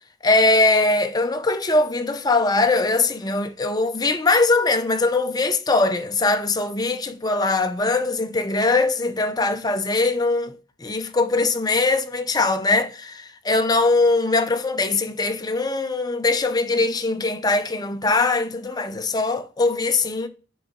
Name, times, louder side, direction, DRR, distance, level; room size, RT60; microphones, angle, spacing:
voice 1, 0.2-10.5 10.8-20.3, left 3 dB, 20° left, 0.6 m, -21 dB
9.9 x 3.9 x 3.7 m
head